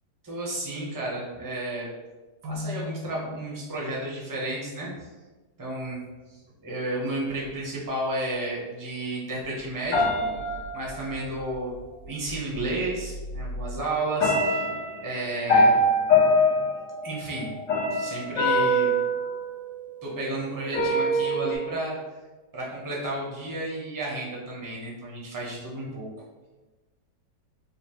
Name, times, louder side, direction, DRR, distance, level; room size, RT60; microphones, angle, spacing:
voice 1, 0.2-1.9 2.4-5.1 5.6-6.0 6.6-10.3 10.7-11.7 12.0-14.7 15.0-15.8 17.0-17.5 17.9-18.9 20.0-22.0 22.5-26.1, right 2 dB, 25° right, -4 dB, 0.4 m, -32 dB
Keyboard (musical), 2.4-4.3, left 3 dB, 75° right, 1.1 m, -37 dB
sound 1, 9.9-11.4 12.5-12.6 13.1-13.7 14.2-20.1 20.7-21.5, left 1 dB, 80° left, 1.7 m, -24 dB
5.1 x 2.3 x 3.0 m, 1.2 s
omnidirectional pair, 1.9 m